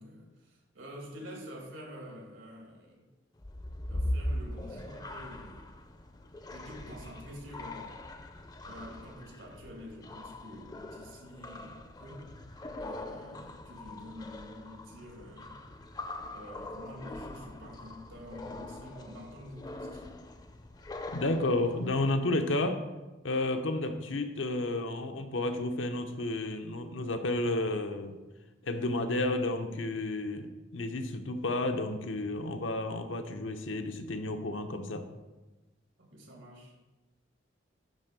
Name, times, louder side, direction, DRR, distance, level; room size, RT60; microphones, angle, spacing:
voice 1, 0.0-3.0 3.9-5.7 6.5-8.0 8.6-12.3 12.8-15.7 16.3-20.0 36.0-36.7, equal, 85° right, 0 dB, 2.6 m, -47 dB
sound 1, 3.4-22.1, left 1 dB, 20° left, 0.5 m, -41 dB
voice 2, 21.1-22.8 23.2-28.2 28.6-35.1, left 2 dB, 85° left, 6 dB, 0.9 m, -31 dB
10.5 x 3.7 x 6.7 m, 1.1 s
head